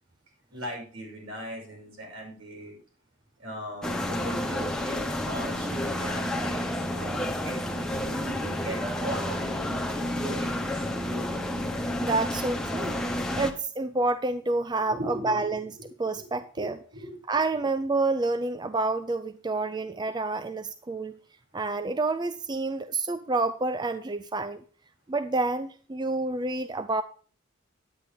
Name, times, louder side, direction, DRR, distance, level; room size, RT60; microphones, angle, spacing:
voice 1, 0.5-2.8 3.4-7.2 7.4-10.9 14.9-15.9 16.1-17.2 19.8-19.9, right 1 dB, 80° right, 0 dB, 5.6 m, -40 dB
sound 1, 3.8-13.5, left 1 dB, 5° left, 0.8 m, -30 dB
voice 2, 12.0-13.0 13.4-15.7 16.0-16.7 17.3-21.2 21.5-24.6 25.1-27.0, right 3 dB, 20° right, 11 dB, 0.4 m, -28 dB
9.8 x 9.8 x 3.4 m, 0.40 s
head